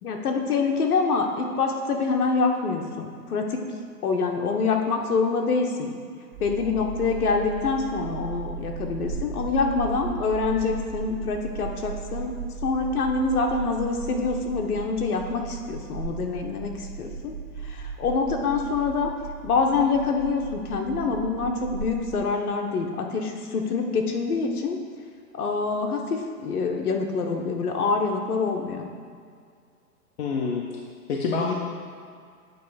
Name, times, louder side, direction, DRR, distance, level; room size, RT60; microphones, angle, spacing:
voice 1, 0.0-3.6 4.0-6.0 6.4-12.3 12.6-17.3 17.6-19.1 19.4-24.8 25.3-28.9, left 4 dB, 65° left, 2 dB, 1.1 m, -26 dB
sound 1, 6.3-22.2, right 5 dB, 55° right, 1.7 m, -36 dB
voice 2, 30.2-30.7 31.1-31.5, left 4 dB, 45° left, -1 dB, 0.6 m, -26 dB
8.8 x 3.2 x 4.9 m, 2.2 s
hypercardioid pair, 155°, 47 cm